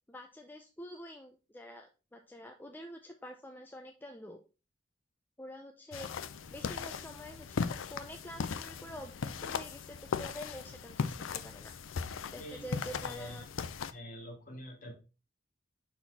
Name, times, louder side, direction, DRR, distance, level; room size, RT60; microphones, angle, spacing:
voice 1, 0.1-4.4 5.4-6.1 6.5-11.7 12.3-13.5, equal, 10° left, 4 dB, 0.4 m, -47 dB
sound 1, 5.9-13.9, left 5 dB, 90° left, 0.5 m, -38 dB
voice 2, 12.3-13.5 13.8-14.9, equal, 45° left, 0 dB, 2.1 m, -46 dB
6.0 x 4.2 x 4.0 m, 0.31 s
head